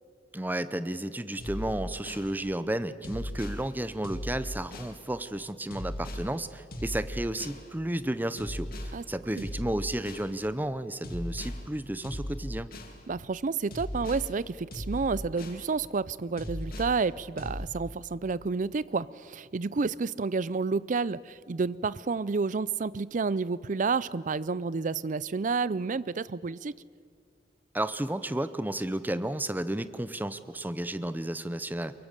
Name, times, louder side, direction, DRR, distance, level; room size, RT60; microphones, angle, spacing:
voice 1, 0.3-12.7 27.7-31.9, right 1 dB, 10° right, 13 dB, 0.7 m, -32 dB
sound 1, 1.4-2.3 3.0-3.6 4.0-5.0 5.7-6.3 6.7-7.6 8.4-9.0 9.4-10.3 11.0-11.6 12.0-13.0 13.7-14.3 14.7-15.6 16.4-17.0 17.4-17.7, equal, 55° left, 2.3 m, -37 dB
voice 2, 13.1-26.7, right 4 dB, 45° right, 20 dB, 0.5 m, -30 dB
23.5 x 22.5 x 6.7 m, 2.1 s
head